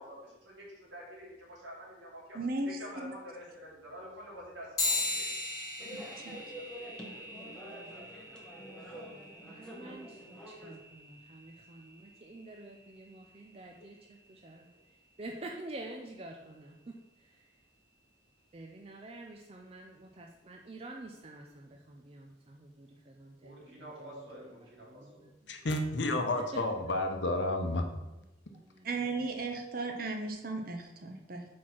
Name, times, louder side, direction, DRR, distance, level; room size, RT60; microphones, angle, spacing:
voice 1, 0.0-2.4 2.6-5.3 23.4-25.2, equal, 80° right, -4 dB, 2.3 m, -47 dB
voice 2, 2.3-3.2 5.9-6.4 28.8-31.5, right 3 dB, 50° right, 4 dB, 0.9 m, -36 dB
sound 1, 4.8-14.6, left 2 dB, 20° left, 1.9 m, -40 dB
sound 2, 5.8-10.8, equal, 5° left, 0.8 m, -47 dB
voice 3, 7.3-8.4 9.0-14.7 15.2-17.4 18.5-25.3 26.5-26.6 28.5-29.2, right 2 dB, 30° right, 1 dB, 0.5 m, -49 dB
voice 4, 25.5-28.0, left 2 dB, 70° left, 5 dB, 0.8 m, -31 dB
4.6 x 4.4 x 5.8 m, 0.98 s
head